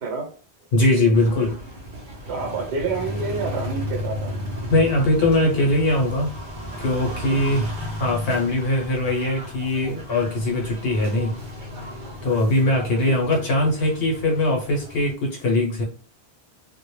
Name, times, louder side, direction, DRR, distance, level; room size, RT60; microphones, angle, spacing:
voice 1, 0.0-0.3 2.3-4.5 7.2-7.6 13.0-13.2, right 4 dB, 75° right, 2 dB, 0.9 m, -29 dB
voice 2, 0.7-1.6 4.7-6.3 6.8-11.4 12.2-15.8, left 1 dB, 65° left, 0 dB, 0.8 m, -21 dB
sound 1, 1.1-15.1, left 1 dB, 55° right, 0.7 m, -34 dB
2.1 x 2.0 x 3.0 m, 0.40 s
omnidirectional pair, 1.1 m